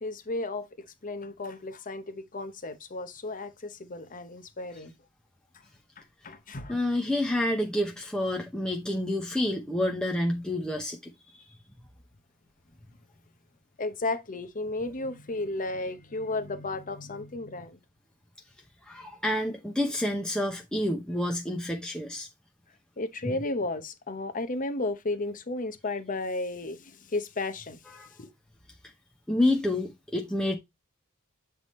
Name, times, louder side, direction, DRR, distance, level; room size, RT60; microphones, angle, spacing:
voice 1, 0.0-0.7 1.0-4.9 6.2-6.8 13.8-17.8 23.0-27.8 28.2-28.3, left 2 dB, 40° left, 0.8 m, -33 dB
voice 2, 6.7-11.1 18.8-22.3 23.2-23.3 27.9-28.1 29.3-30.6, left 1 dB, 5° left, 0.8 m, -28 dB
7.9 x 3.4 x 4.2 m
head